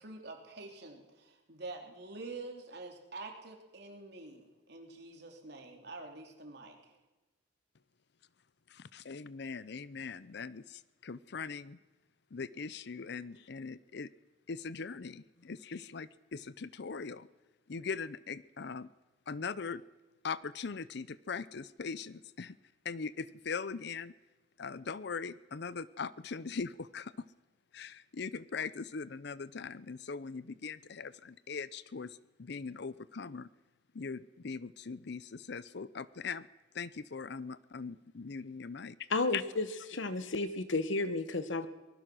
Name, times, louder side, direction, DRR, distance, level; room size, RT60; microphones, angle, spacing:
voice 1, 0.0-6.9, right 3 dB, 60° right, 3 dB, 3.3 m, -47 dB
voice 2, 8.7-11.8 12.3-14.1 14.5-17.3 17.7-18.9 19.3-19.8 20.2-22.6 22.8-24.1 24.6-27.1 27.7-33.5 33.9-36.5 36.7-39.0 39.3-39.4, left 5 dB, 60° left, 18 dB, 0.6 m, -41 dB
voice 3, 39.1-41.7, left 2 dB, 75° left, 12 dB, 1.2 m, -32 dB
24.0 x 20.0 x 6.2 m, 1.1 s
head